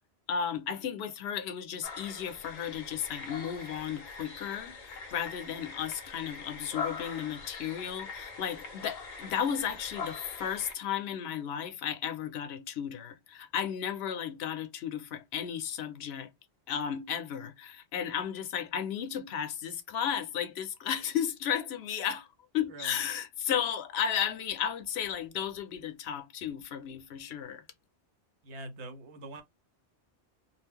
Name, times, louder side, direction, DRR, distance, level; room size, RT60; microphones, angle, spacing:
voice 1, 0.3-16.3 16.7-22.3 22.5-27.6, left 8 dB, 75° left, 0.8 m, -34 dB
sound 1, 1.8-10.7, left 5 dB, 50° left, 0.5 m, -42 dB
voice 2, 28.4-29.4, right 2 dB, 85° right, 1.0 m, -43 dB
2.3 x 2.0 x 3.4 m
omnidirectional pair, 1.1 m